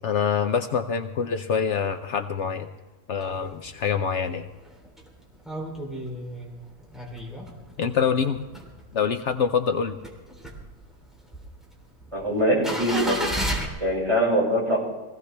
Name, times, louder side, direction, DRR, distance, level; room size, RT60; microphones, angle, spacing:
voice 1, 0.0-2.7 3.1-4.5 7.8-8.4 8.9-10.0, left 6 dB, 65° left, 8 dB, 1.0 m, -25 dB
sound 1, 3.2-3.8 4.3-4.4 4.5-8.0 8.3-9.3 9.7-13.7, equal, ahead, 3.3 m, -32 dB
voice 2, 12.1-13.2 13.8-14.8, equal, 25° right, -4 dB, 6.1 m, -22 dB
22.5 x 16.5 x 3.4 m, 1.2 s
omnidirectional pair, 1.4 m